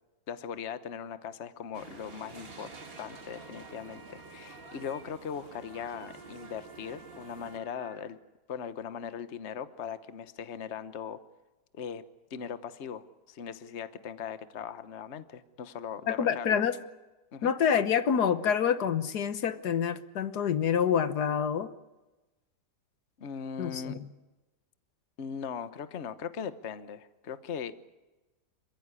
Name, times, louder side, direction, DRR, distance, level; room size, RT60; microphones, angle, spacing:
voice 1, 0.3-8.2 8.5-11.2 11.7-12.0 12.3-16.6 17.3-17.5 23.2-24.0 25.2-27.7, left 7 dB, 45° left, 12 dB, 1.2 m, -39 dB
sound 1, 1.7-7.6, right 4 dB, 35° right, 1.8 m, -49 dB
sound 2, 2.4-8.0, right 2 dB, 90° right, 4.0 m, -53 dB
voice 2, 16.1-16.8 17.4-21.7 23.6-24.0, left 7 dB, 70° left, 12 dB, 1.6 m, -27 dB
27.0 x 16.0 x 9.8 m, 1.1 s
omnidirectional pair, 1.8 m